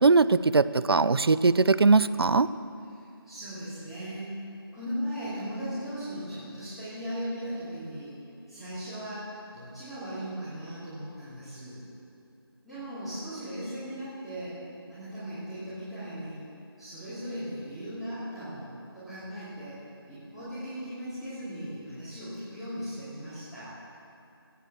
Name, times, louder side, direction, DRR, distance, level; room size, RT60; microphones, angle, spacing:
voice 1, 0.0-2.5, right 3 dB, 70° right, 15 dB, 0.5 m, -21 dB
voice 2, 2.9-4.4 4.7-11.8 12.6-14.6 14.9-16.4 16.8-19.8 20.1-23.7, equal, ahead, -18 dB, 2.7 m, -38 dB
16.0 x 8.1 x 7.2 m, 2.6 s
figure-of-eight pair, 165°, 13 cm